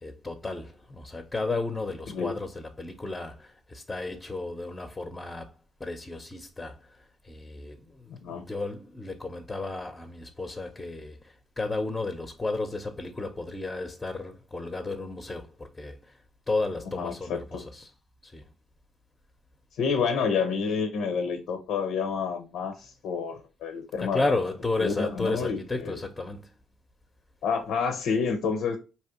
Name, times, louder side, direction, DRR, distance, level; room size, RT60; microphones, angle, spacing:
voice 1, 0.0-5.5 5.8-16.2 16.5-17.9 18.2-18.5 24.0-26.5, left 3 dB, 15° left, 0.7 m, -33 dB
voice 2, 8.1-8.5 16.9-17.6 19.7-24.2 24.8-26.0 27.4-28.8, left 5 dB, 85° left, 0.7 m, -29 dB
4.8 x 2.9 x 2.9 m
cardioid pair, 90°, 0 cm